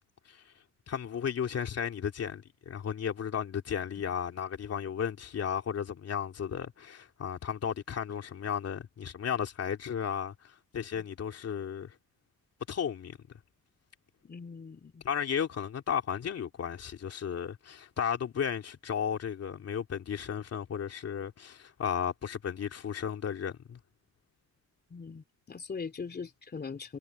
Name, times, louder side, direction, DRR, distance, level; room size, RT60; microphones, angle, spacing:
voice 1, 0.9-12.0 12.7-13.2 15.0-23.8, left 8 dB, 55° left, 2.9 m, -34 dB
voice 2, 14.2-15.0 24.9-27.0, left 5 dB, 35° left, 3.1 m, -41 dB
cardioid pair, 90°, 30 cm